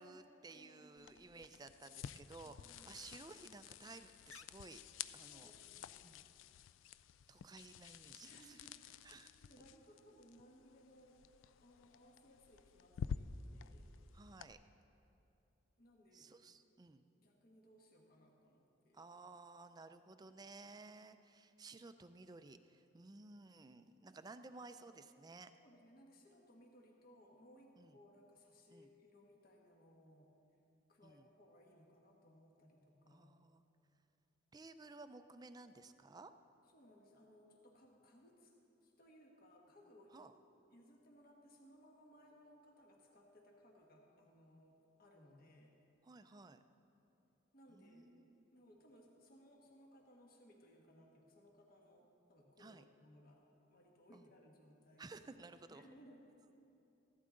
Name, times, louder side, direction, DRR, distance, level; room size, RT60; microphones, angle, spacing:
voice 1, 0.0-4.8 5.1-5.5 6.0-6.2 7.3-8.7 9.0-9.6 14.1-14.6 16.1-17.0 18.9-25.5 27.8-28.0 28.7-28.9 31.0-31.3 33.1-33.6 34.5-36.3 40.1-40.3 46.0-46.6 47.7-48.5 52.6-52.8 54.1-54.3 55.0-55.9, right 3 dB, 20° right, 10 dB, 0.4 m, -56 dB
voice 2, 0.5-1.2 2.6-3.0 5.2-6.0 8.2-8.8 9.4-11.2 11.6-13.9 15.8-16.4 17.2-19.0 25.6-30.3 30.9-33.3 36.7-38.5 38.8-40.3 40.7-45.8 47.5-48.1 48.5-55.2 55.7-56.3, equal, 50° left, 0 dB, 1.3 m, -64 dB
sound 1, 1.0-14.5, left 7 dB, 85° left, 0.3 m, -51 dB
15.0 x 12.0 x 3.8 m, 2.9 s
head